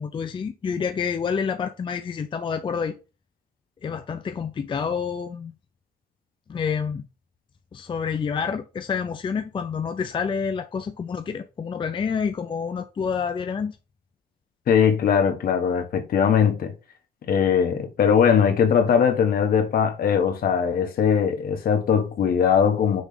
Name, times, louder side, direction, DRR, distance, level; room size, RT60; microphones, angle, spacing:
voice 1, 0.0-2.9 3.8-5.5 6.5-7.1 7.7-13.8, left 6 dB, 30° left, 0.5 m, -28 dB
voice 2, 14.7-16.7 17.3-23.0, left 7 dB, 60° left, 1.4 m, -20 dB
6.3 x 3.2 x 5.0 m
cardioid pair, 130°, 17 cm